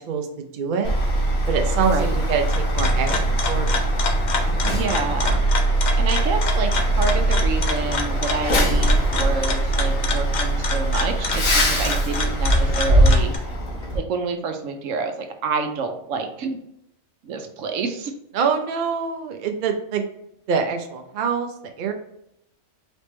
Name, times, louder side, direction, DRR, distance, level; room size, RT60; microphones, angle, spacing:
voice 1, 0.5-0.9 1.5-3.8 18.3-20.0 20.5-21.5 21.8-21.9, right 6 dB, 50° right, 4 dB, 0.6 m, -25 dB
Truck, 0.8-14.0, right 1 dB, 80° left, 1.6 m, -21 dB
voice 2, 1.8-2.2 4.6-5.4 6.0-13.3 13.9-16.6 17.2-18.1, right 4 dB, 80° right, 5 dB, 1.0 m, -28 dB
sound 1, 2.5-13.4, left 4 dB, 50° left, 0.5 m, -28 dB
4.2 x 3.4 x 3.1 m, 0.76 s
omnidirectional pair, 1.4 m